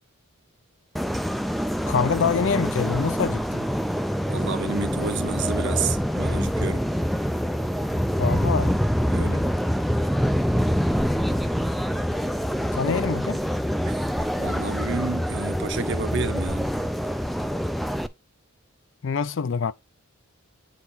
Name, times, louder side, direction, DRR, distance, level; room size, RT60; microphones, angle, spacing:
sound 1, 0.9-18.1, equal, ahead, 0.3 m, -25 dB
voice 1, 1.9-3.7 8.2-8.8 9.2-9.3 12.7-13.4 19.0-19.7, left 5 dB, 60° left, 0.5 m, -25 dB
voice 2, 4.3-6.8 9.1-9.5 13.9-14.0 14.4-16.7, right 5 dB, 55° right, 0.9 m, -30 dB
8.2 x 4.2 x 4.0 m
head